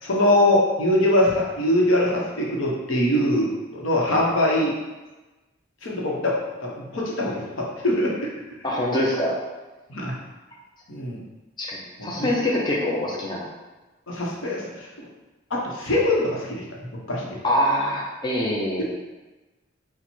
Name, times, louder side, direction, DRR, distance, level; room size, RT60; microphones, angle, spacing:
voice 1, 0.0-4.7 5.8-6.4 6.6-8.3 9.9-10.1 10.9-11.2 12.0-12.3 14.1-15.1 15.5-16.6 17.1-17.4 18.8-18.9, left 1 dB, 85° left, -3 dB, 0.9 m, -23 dB
voice 2, 8.6-9.3 11.6-13.4 17.4-18.9, left 1 dB, 20° left, -4 dB, 0.6 m, -24 dB
4.3 x 2.2 x 4.4 m, 1.1 s
head